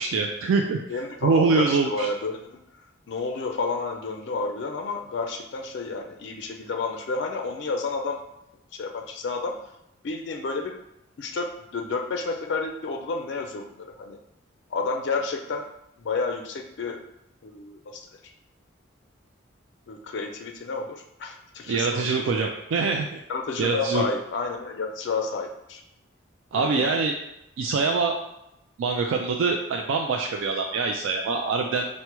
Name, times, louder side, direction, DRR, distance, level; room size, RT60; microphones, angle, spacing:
voice 1, 0.0-0.8 1.2-2.1 21.7-23.2 23.6-24.0 26.5-27.1 27.6-28.1 28.8-31.9, right 4 dB, 75° right, 2 dB, 0.3 m, -24 dB
voice 2, 0.9-2.5 3.1-8.2 8.7-9.6 10.0-10.8 11.2-13.7 14.0-14.2 14.7-15.6 16.0-17.0 17.4-18.1 19.9-22.0 22.3-22.4 23.3-25.8 26.5-27.0, left 4 dB, 60° left, 4 dB, 0.4 m, -30 dB
4.6 x 2.1 x 2.9 m, 0.85 s
head